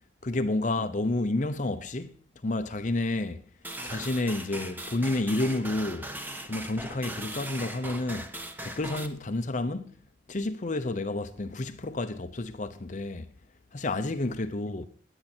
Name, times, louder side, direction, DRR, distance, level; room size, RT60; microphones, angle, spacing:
voice 1, 0.2-3.4 3.8-6.1 6.4-8.3 8.6-9.9 10.3-13.3 13.7-14.9, left 2 dB, 40° left, 0.7 m, -30 dB
sound 1, 3.6-9.1, right 1 dB, 10° right, 1.2 m, -39 dB
20.5 x 9.0 x 4.4 m
head